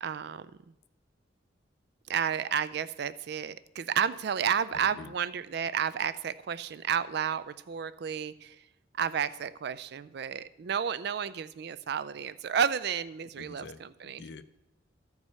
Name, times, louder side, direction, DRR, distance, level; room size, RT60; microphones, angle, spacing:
voice 1, 0.0-0.7 2.1-8.6 8.9-14.2, right 7 dB, 60° right, 15 dB, 0.4 m, -32 dB
voice 2, 13.4-14.4, left 4 dB, 65° left, 13 dB, 0.5 m, -47 dB
13.5 x 4.7 x 5.4 m, 0.93 s
head